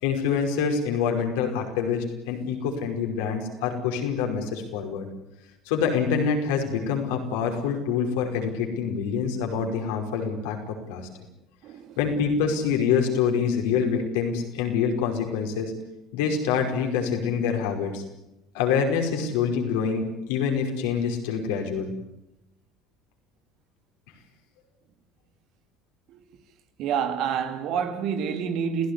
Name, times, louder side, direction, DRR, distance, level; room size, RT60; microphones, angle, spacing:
voice 1, 0.0-5.1 5.7-11.1 12.0-15.7 16.1-18.0 18.5-21.9, left 6 dB, 75° left, 5.4 m, -26 dB
voice 2, 11.6-12.0 26.1-26.2 26.8-28.9, right 7 dB, 60° right, 3.1 m, -28 dB
29.5 x 16.5 x 9.9 m
hypercardioid pair, 65°, 0 cm